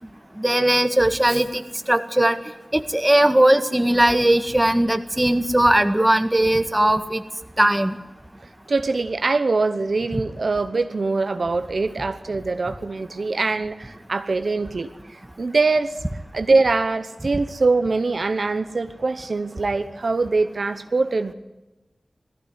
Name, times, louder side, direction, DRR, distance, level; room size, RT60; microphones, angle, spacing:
voice 1, 0.4-1.6 1.9-2.4 2.7-7.2 7.6-8.0, right 1 dB, 15° right, 8 dB, 1.8 m, -18 dB
voice 2, 8.7-14.9 15.4-15.9 16.3-21.3, right 3 dB, 70° right, 9 dB, 1.0 m, -23 dB
17.5 x 15.0 x 9.8 m, 1.1 s
cardioid pair, 45°, 0 cm